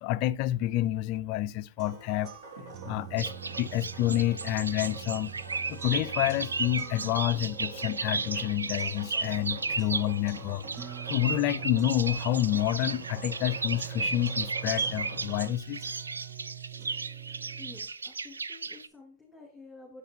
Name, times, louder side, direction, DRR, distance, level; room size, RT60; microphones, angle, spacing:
voice 1, 0.0-2.3 2.8-5.3 5.7-10.7 11.1-15.8, left 14 dB, 40° left, 0.3 m, -29 dB
sound 1, 1.8-17.8, right 10 dB, 30° right, 0.7 m, -44 dB
sound 2, 1.8-15.5, right 1 dB, 65° right, 2.4 m, -46 dB
sound 3, 3.2-18.9, right 4 dB, 90° right, 0.4 m, -35 dB
voice 2, 17.6-20.0, left 3 dB, 5° left, 2.5 m, -50 dB
7.9 x 5.7 x 3.0 m
hypercardioid pair, 120°, 0 cm